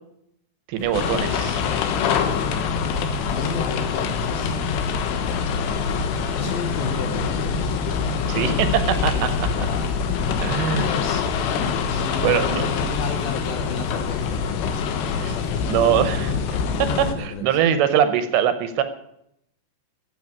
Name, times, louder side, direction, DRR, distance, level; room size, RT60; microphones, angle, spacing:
voice 1, 0.7-1.6 8.3-9.5 10.4-10.9 12.2-12.7 15.2-15.4 15.7-16.4 16.8-18.8, right 9 dB, 75° right, 10 dB, 2.8 m, -22 dB
sound 1, 0.8-14.3, equal, 30° left, 2.0 m, -35 dB
sound 2, 0.9-17.2, left 6 dB, 85° left, 3.8 m, -25 dB
voice 2, 3.3-4.6 6.3-7.5 9.6-9.9 10.7-11.3 11.9-16.2 17.2-17.5, left 6 dB, 70° left, 5 dB, 2.5 m, -33 dB
15.0 x 7.7 x 9.4 m, 0.77 s
omnidirectional pair, 5.5 m